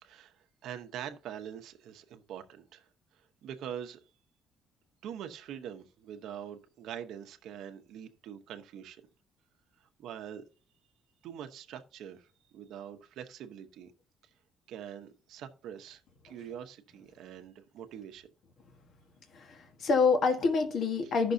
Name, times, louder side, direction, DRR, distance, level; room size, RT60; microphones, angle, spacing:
voice 1, 0.0-4.0 5.0-9.0 10.0-10.4 11.2-12.3 12.5-13.9 14.7-18.3, right 9 dB, 70° right, 0.8 m, -44 dB
voice 2, 19.3-21.3, left 4 dB, 45° left, 1.3 m, -27 dB
14.5 x 6.0 x 2.6 m
cardioid pair, 160°, 0 cm